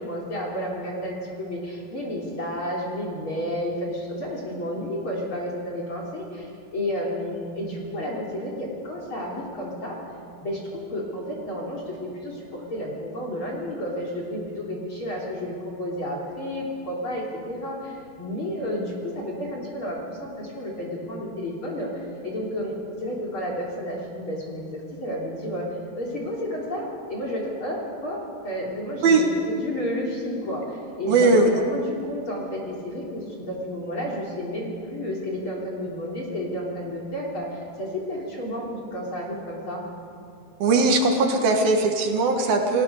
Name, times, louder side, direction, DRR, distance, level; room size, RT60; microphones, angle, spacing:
voice 1, 0.0-10.0 10.4-22.8 23.0-25.7 26.0-39.8, equal, 35° left, -2 dB, 3.6 m, -31 dB
voice 2, 31.1-31.5 40.6-42.8, right 3 dB, 65° right, 3 dB, 3.4 m, -19 dB
29.0 x 18.0 x 6.7 m, 2.5 s
omnidirectional pair, 4.6 m